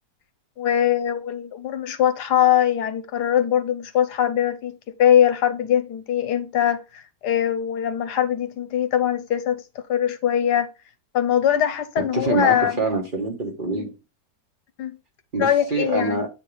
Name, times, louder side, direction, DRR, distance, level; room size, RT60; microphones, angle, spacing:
voice 1, 0.6-9.6 9.9-10.7 11.1-12.8 14.8-15.0 15.4-16.2, left 10 dB, 75° left, 1.3 m, -22 dB
voice 2, 12.0-13.9 15.3-16.3, right 3 dB, 30° right, 1.4 m, -25 dB
8.5 x 4.5 x 3.3 m
omnidirectional pair, 1.8 m